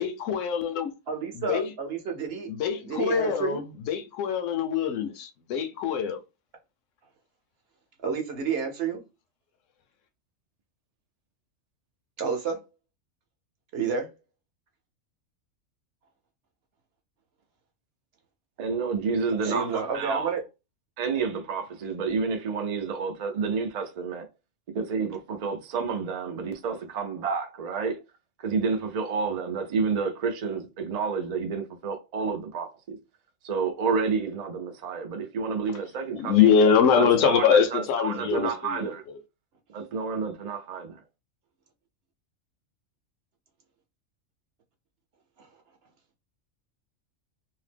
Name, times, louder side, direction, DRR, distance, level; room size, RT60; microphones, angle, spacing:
voice 1, 0.0-0.9 1.3-1.7 2.5-6.2 36.2-39.2, left 7 dB, 70° left, 0.9 m, -24 dB
voice 2, 1.1-2.5 2.8-3.6 8.0-9.0 12.2-12.6 13.7-14.1 19.4-20.4 45.4-45.5, right 5 dB, 55° right, 0.8 m, -30 dB
voice 3, 18.6-20.3 21.0-24.3 24.7-28.0 28.4-33.0 33.4-36.5 37.0-39.0 39.7-41.0, right 5 dB, 85° right, 0.3 m, -29 dB
2.8 x 2.0 x 3.2 m
omnidirectional pair, 1.4 m